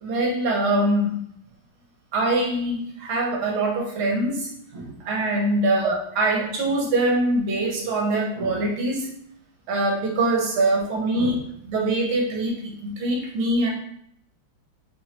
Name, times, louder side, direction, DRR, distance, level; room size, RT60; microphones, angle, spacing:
voice 1, 0.0-1.1 2.1-9.1 9.7-13.7, right 2 dB, 85° right, 0 dB, 1.7 m, -23 dB
5.3 x 2.3 x 2.9 m, 0.70 s
omnidirectional pair, 2.2 m